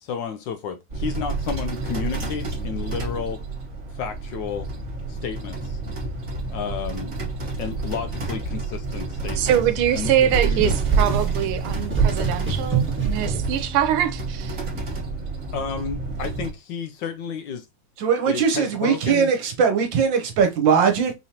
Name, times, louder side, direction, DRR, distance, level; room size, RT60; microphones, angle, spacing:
voice 1, 0.0-3.4 3.9-4.7 5.1-5.8 6.5-7.1 7.4-9.5 9.9-10.8 15.5-17.7 18.3-19.3, left 6 dB, 75° left, 1.1 m, -32 dB
sound 1, 0.9-16.5, right 2 dB, 40° right, 1.7 m, -30 dB
sound 2, 9.3-13.6, right 6 dB, 5° right, 1.0 m, -24 dB
voice 2, 9.4-14.1 14.4-14.6, right 10 dB, 85° right, 1.6 m, -23 dB
voice 3, 18.0-21.1, right 6 dB, 65° right, 1.6 m, -20 dB
5.5 x 3.1 x 2.8 m
omnidirectional pair, 2.3 m